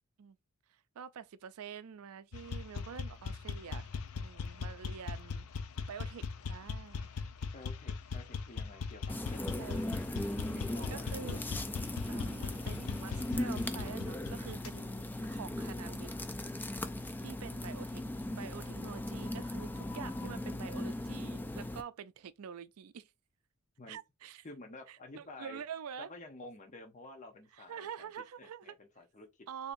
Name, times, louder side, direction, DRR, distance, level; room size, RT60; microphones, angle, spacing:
voice 1, 0.7-3.9 4.1-5.5 5.9-7.1 9.6-10.0 10.9-11.4 12.1-14.9 15.2-16.1 17.2-18.0 18.3-23.1 23.9-24.5 24.9-26.1 27.5-28.8 29.5-29.7, right 7 dB, 75° right, 0.4 m, -46 dB
sound 1, 2.3-14.8, left 5 dB, 75° left, 0.5 m, -40 dB
voice 2, 7.5-9.6 10.4-11.4 23.8-24.0 24.4-25.6 26.0-28.1 28.4-29.5, left 2 dB, 35° left, 0.8 m, -51 dB
sound 2, 9.1-21.8, left 1 dB, 10° left, 0.3 m, -38 dB
6.7 x 2.8 x 2.6 m
head